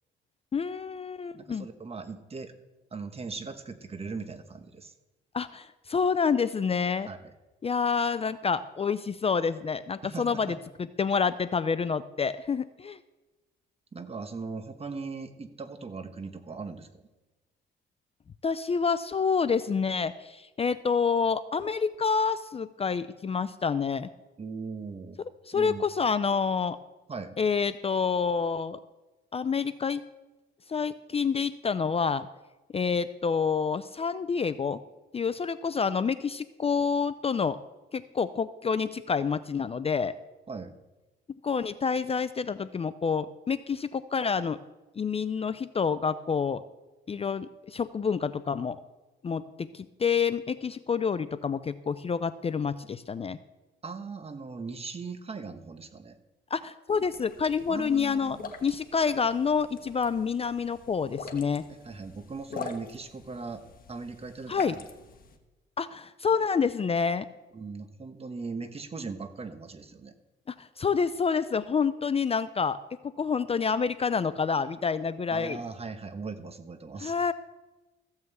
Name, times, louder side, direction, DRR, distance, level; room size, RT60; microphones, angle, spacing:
voice 1, 0.5-1.7 5.3-7.1 7.6-13.0 18.4-24.1 25.5-26.8 27.4-28.8 29.3-30.0 30.7-32.3 32.7-34.8 35.1-37.6 37.9-40.1 41.4-44.6 45.0-46.6 47.1-48.8 49.2-49.4 49.7-53.4 56.5-61.6 64.5-64.8 65.8-67.3 70.5-72.8 73.0-75.6 77.0-77.3, left 5 dB, 30° left, 14 dB, 0.5 m, -28 dB
voice 2, 1.3-2.5 2.9-4.9 7.1-7.3 10.0-10.6 13.9-16.9 24.4-25.2 25.5-25.8 27.1-27.4 40.5-40.7 53.8-56.2 57.7-58.5 61.7-64.8 67.5-70.1 75.3-77.1, right 4 dB, 30° right, 9 dB, 1.2 m, -39 dB
sound 1, 56.9-65.4, left 5 dB, 45° left, 1.5 m, -45 dB
14.5 x 5.6 x 7.9 m, 1.1 s
cardioid pair, 90°, 20 cm